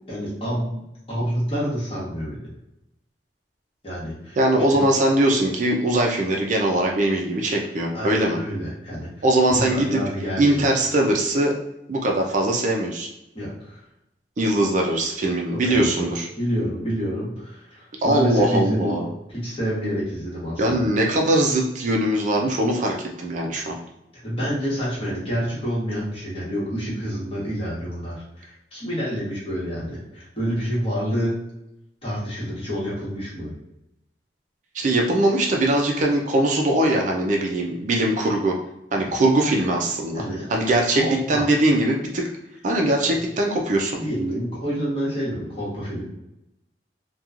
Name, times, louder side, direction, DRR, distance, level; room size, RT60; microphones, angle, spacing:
voice 1, 0.1-0.8 1.1-2.4 3.8-4.4 4.7-4.8 7.9-10.8 13.3-13.8 15.5-16.1 16.4-19.0 19.3-20.9 24.2-31.4 32.0-33.5 39.0-39.1 40.1-41.5 44.0-46.1, equal, 35° left, -7 dB, 1.2 m, -28 dB
voice 2, 4.4-8.4 9.2-10.0 10.4-11.5 11.9-13.1 14.4-16.3 18.0-19.1 20.6-23.7 34.7-38.5 38.9-41.0 41.3-42.3 42.6-44.0, right 1 dB, 45° right, 1 dB, 0.4 m, -21 dB
2.9 x 2.2 x 2.4 m, 0.87 s
head